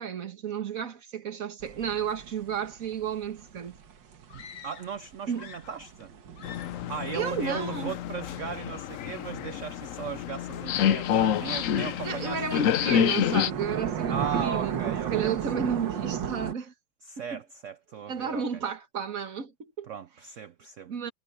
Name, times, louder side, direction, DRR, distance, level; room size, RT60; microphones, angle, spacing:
voice 1, 0.0-3.8 5.3-5.5 7.1-7.9 12.0-16.7 17.2-17.4 18.1-19.9 20.9-21.1, right 7 dB, 45° right, 1.8 m, -32 dB
sound 1, 1.6-8.0 10.7-16.5, right 8 dB, 70° right, 2.0 m, -35 dB
sound 2, 4.3-5.0 5.3-6.1 6.3-6.9, left 8 dB, 55° left, 1.0 m, -47 dB
voice 2, 4.3-6.1 6.9-13.0 14.1-15.4 17.0-18.4 19.9-20.9, right 7 dB, 90° right, 0.6 m, -37 dB
sound 3, 6.4-13.5, left 9 dB, 75° left, 0.7 m, -28 dB
omnidirectional pair, 2.1 m